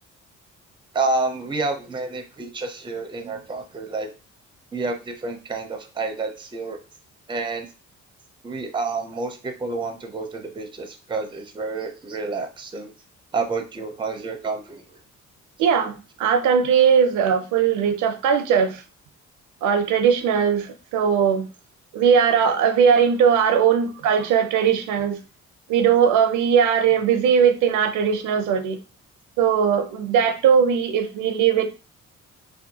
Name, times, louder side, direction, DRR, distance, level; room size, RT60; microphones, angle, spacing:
voice 1, 0.9-4.1 4.7-6.8 7.3-7.7 8.4-12.9 13.3-15.0, right 3 dB, 15° right, 5 dB, 0.5 m, -29 dB
voice 2, 15.6-18.8 19.6-20.7 20.9-21.5 21.9-25.2 25.7-28.8 29.4-31.7, right 7 dB, 85° right, 7 dB, 0.5 m, -19 dB
2.6 x 2.2 x 2.7 m, 0.32 s
cardioid pair, 90°, 30 cm